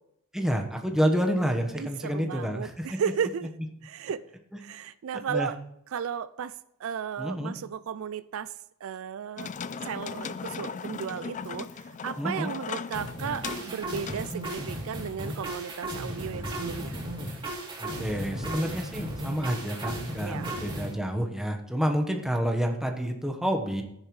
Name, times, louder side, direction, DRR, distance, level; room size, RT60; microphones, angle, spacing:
voice 1, 0.3-2.9 5.3-5.5 7.2-7.5 12.2-12.5 17.8-23.8, equal, ahead, 3 dB, 1.2 m, -29 dB
voice 2, 1.8-3.5 3.8-4.2 4.6-5.6 5.9-6.5 6.8-8.5 8.8-9.5 9.8-17.0 20.2-20.5, right 7 dB, 65° right, 14 dB, 0.4 m, -34 dB
sound 1, 9.4-15.1, left 5 dB, 35° left, 0.4 m, -38 dB
sound 2, 12.9-20.9, right 1 dB, 25° right, 3.1 m, -35 dB
14.0 x 10.5 x 3.2 m, 0.79 s
head